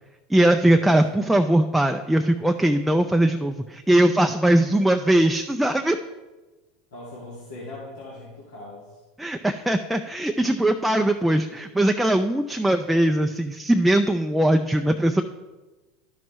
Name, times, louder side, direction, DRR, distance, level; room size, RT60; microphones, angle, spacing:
voice 1, 0.3-6.0 9.2-15.2, right 1 dB, 5° right, 5 dB, 0.4 m, -20 dB
voice 2, 6.9-9.0, left 2 dB, 80° left, -6 dB, 2.0 m, -40 dB
12.0 x 6.0 x 3.1 m, 1.2 s
hypercardioid pair, 95°, 0 cm